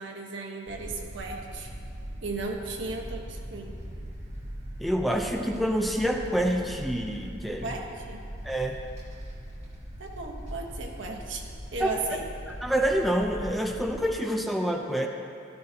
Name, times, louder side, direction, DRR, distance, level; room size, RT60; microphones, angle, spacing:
voice 1, 0.0-1.7 2.2-3.7 7.6-8.2 10.0-12.2, right 3 dB, 75° right, 1 dB, 1.3 m, -36 dB
sound 1, 0.7-14.1, equal, 35° right, 1.9 m, -41 dB
voice 2, 4.8-7.7 8.4-8.8 11.8-12.2 12.5-15.1, equal, ahead, 2 dB, 0.6 m, -27 dB
15.0 x 12.5 x 2.9 m, 2.5 s
head